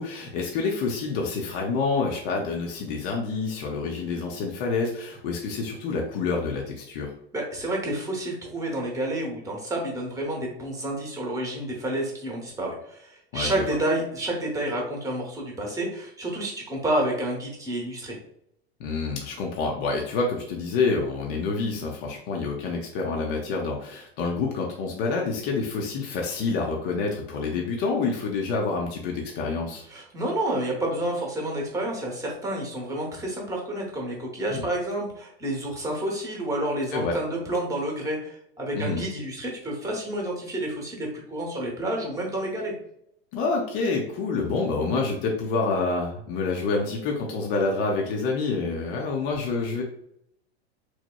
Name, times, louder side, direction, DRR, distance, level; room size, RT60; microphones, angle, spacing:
voice 1, 0.0-7.1 13.3-13.7 18.8-29.8 34.5-34.7 36.9-37.1 38.7-39.1 43.3-49.8, left 4 dB, 50° left, 0 dB, 0.5 m, -27 dB
voice 2, 7.3-18.2 29.9-42.7, right 1 dB, 10° right, -1 dB, 0.8 m, -29 dB
2.9 x 2.0 x 2.2 m, 0.73 s
hypercardioid pair, 105°, 32 cm